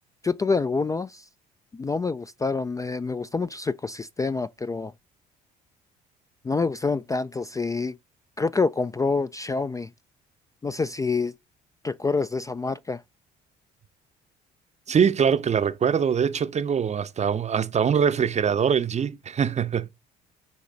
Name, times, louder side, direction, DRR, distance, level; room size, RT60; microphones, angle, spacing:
voice 1, 0.2-1.3 1.7-4.9 6.4-8.0 8.4-9.9 10.6-11.3 11.8-13.0, left 4 dB, 15° left, 0.3 m, -27 dB
voice 2, 14.9-19.9, right 7 dB, 35° right, 0.6 m, -23 dB
8.3 x 3.1 x 3.9 m
hypercardioid pair, 55°, 21 cm